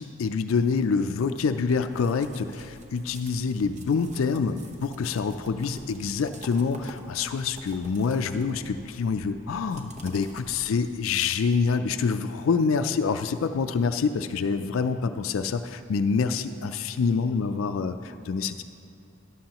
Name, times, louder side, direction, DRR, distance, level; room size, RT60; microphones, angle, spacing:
voice 1, 0.0-18.6, left 5 dB, 90° left, 9 dB, 0.4 m, -26 dB
sound 1, 1.3-11.0, right 1 dB, 35° right, 0.9 m, -47 dB
13.0 x 11.5 x 2.9 m, 2.6 s
head